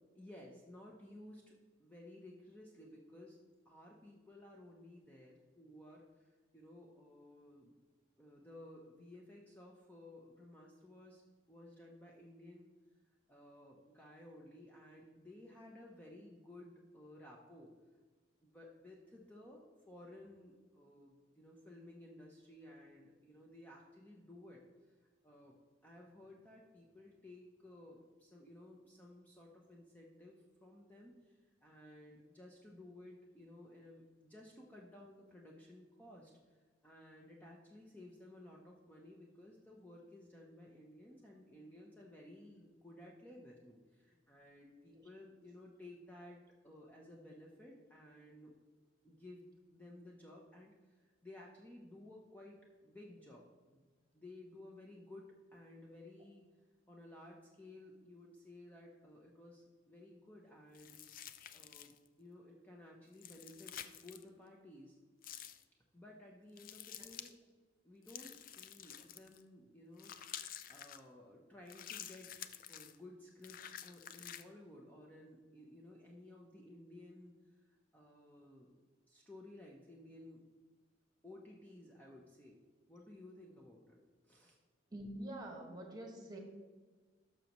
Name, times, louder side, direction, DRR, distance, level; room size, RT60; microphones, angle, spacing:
voice 1, 0.2-1.5 1.8-7.7 8.2-11.2 11.5-12.7 13.3-17.7 18.4-24.9 25.2-25.6 25.8-48.5 49.0-53.9 54.1-56.5 56.9-61.0 61.5-65.0 65.9-67.4 67.8-77.4 77.6-78.8 79.1-80.5 81.2-82.6 82.9-84.0 84.2-84.6, left 1 dB, 10° left, -2 dB, 0.7 m, -56 dB
sound 1, 60.7-62.1 63.1-64.2 65.2-65.6 66.6-67.3 68.1-69.4 70.0-71.0 71.7-72.9 73.4-74.4, left 10 dB, 50° left, 0.4 m, -50 dB
voice 2, 84.9-86.4, right 1 dB, 20° right, 1 dB, 1.5 m, -46 dB
12.0 x 6.2 x 3.0 m, 1.4 s
head